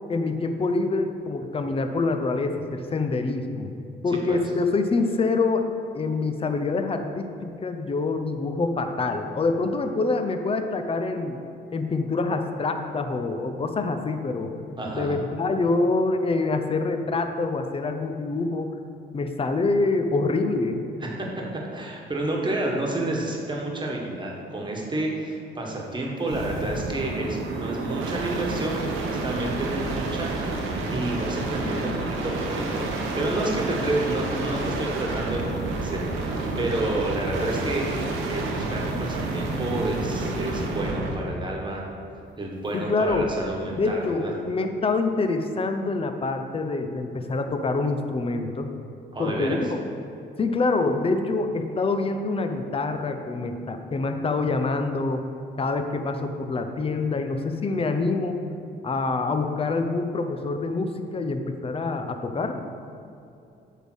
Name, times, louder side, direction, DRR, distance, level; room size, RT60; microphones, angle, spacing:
voice 1, 0.1-3.7 4.0-5.6 5.9-11.4 11.7-14.5 14.9-18.7 19.1-20.8 42.7-43.3 43.8-48.7 49.2-49.8 50.4-55.2 55.6-58.4 58.8-62.6, left 3 dB, 30° left, 6 dB, 0.6 m, -26 dB
voice 2, 14.8-15.2 21.0-21.3 21.7-41.9 42.4-44.3 49.1-49.6, right 1 dB, 25° right, -1 dB, 1.5 m, -30 dB
sound 1, 26.2-41.3 43.0-43.5, right 2 dB, 85° right, 1.0 m, -29 dB
8.1 x 3.7 x 6.3 m, 2.5 s
cardioid pair, 90°, 20 cm